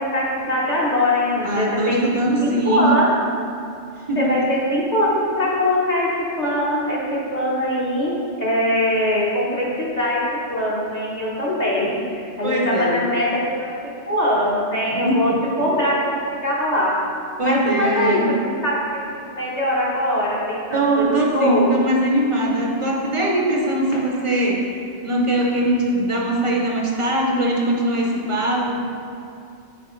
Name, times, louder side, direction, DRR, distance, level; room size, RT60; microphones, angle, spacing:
voice 1, 0.0-2.0 2.4-3.1 4.2-6.1 6.4-10.2 10.5-12.0 12.4-16.0 16.3-16.9 17.4-19.0 19.3-21.7 23.9-24.0, left 1 dB, 35° left, -6 dB, 1.1 m, -22 dB
voice 2, 1.4-2.9 4.1-4.3 12.4-13.0 15.1-15.4 17.4-18.3 20.7-24.6 25.0-28.8, right 1 dB, 35° right, -1 dB, 0.7 m, -21 dB
8.0 x 4.4 x 3.1 m, 2.5 s
omnidirectional pair, 1.2 m